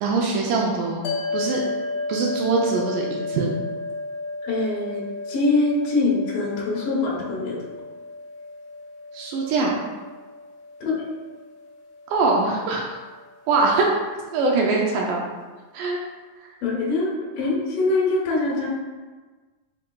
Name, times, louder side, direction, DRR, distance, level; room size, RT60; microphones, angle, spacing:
voice 1, 0.0-1.1 1.3-1.6 2.1-3.6 9.1-9.8 12.1-12.8 13.5-13.9 14.3-15.3 15.7-16.0 16.4-16.5, right 3 dB, 80° right, -1 dB, 1.9 m, -22 dB
sound 1, 1.0-13.5, left 3 dB, 80° left, 1.8 m, -34 dB
voice 2, 4.4-7.6 10.8-11.0 16.6-18.7, left 3 dB, 65° left, -4 dB, 1.7 m, -23 dB
5.6 x 3.6 x 2.3 m, 1.3 s
omnidirectional pair, 4.0 m